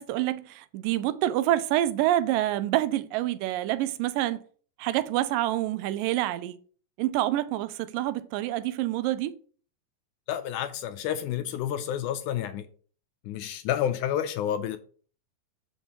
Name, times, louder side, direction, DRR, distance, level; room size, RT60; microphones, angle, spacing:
voice 1, 0.0-4.4 4.8-6.6 7.0-9.4, right 14 dB, 85° right, 2.2 m, -27 dB
voice 2, 10.3-12.7 13.3-14.8, left 10 dB, 80° left, 1.9 m, -30 dB
13.5 x 5.5 x 2.9 m
omnidirectional pair, 3.9 m